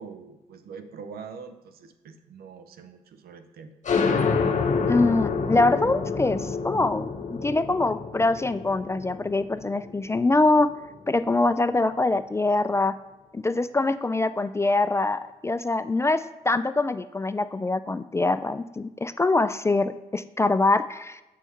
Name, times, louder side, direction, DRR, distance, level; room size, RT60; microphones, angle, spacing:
voice 1, 0.0-3.7, right 5 dB, 65° right, 9 dB, 0.7 m, -43 dB
sound 1, 3.8-11.1, left 5 dB, 45° left, 0.8 m, -28 dB
voice 2, 4.9-10.7 11.1-12.9 13.3-21.2, left 2 dB, 15° left, 12 dB, 0.3 m, -24 dB
6.2 x 4.1 x 5.6 m, 1.0 s
hypercardioid pair, 45°, 17 cm